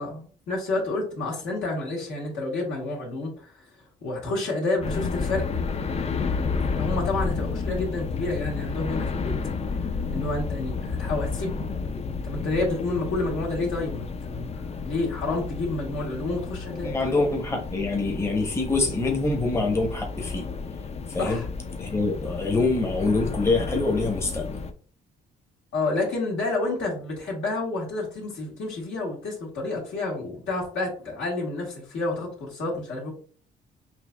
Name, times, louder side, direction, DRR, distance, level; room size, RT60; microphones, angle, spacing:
voice 1, 0.0-3.7 4.0-5.5 6.8-9.4 9.9-16.9 21.2-21.5 25.7-33.1, left 2 dB, 75° left, -3 dB, 1.6 m, -29 dB
sound 1, 4.8-24.7, left 5 dB, 30° left, 0.4 m, -31 dB
voice 2, 16.8-20.5 21.1-21.4 21.8-24.5, left 3 dB, 15° left, 1 dB, 0.8 m, -25 dB
4.3 x 2.7 x 2.2 m, 0.44 s
cardioid pair, 90°, 20 cm